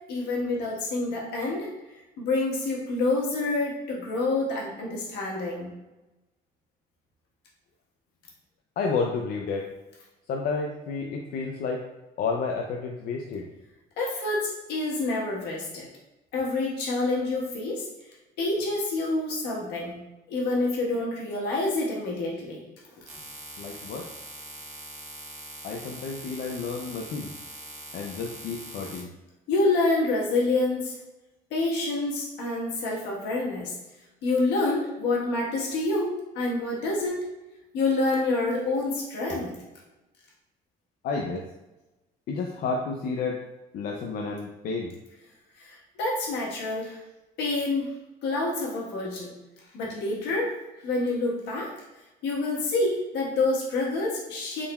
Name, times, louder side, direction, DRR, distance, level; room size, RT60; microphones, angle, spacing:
voice 1, 0.1-1.7 2.2-5.7 14.0-15.9 16.3-17.9 18.4-20.0 20.3-22.6 23.0-23.1 29.5-31.0 31.5-33.7 34.2-37.2 37.7-39.5 45.6-47.0 47.4-47.9 48.2-49.3 49.7-50.5 50.8-51.7 52.2-54.7, left 2 dB, 85° left, -3 dB, 1.4 m, -27 dB
voice 2, 8.8-9.6 10.3-11.8 12.2-13.4 23.6-24.1 25.6-27.3 27.9-29.1 41.0-41.5 42.3-43.4 43.7-44.9, left 4 dB, 60° left, 1 dB, 0.5 m, -30 dB
sound 1, 23.1-29.0, right 2 dB, 45° right, 1.0 m, -42 dB
3.9 x 3.7 x 2.3 m, 1.0 s
cardioid pair, 110°, 17 cm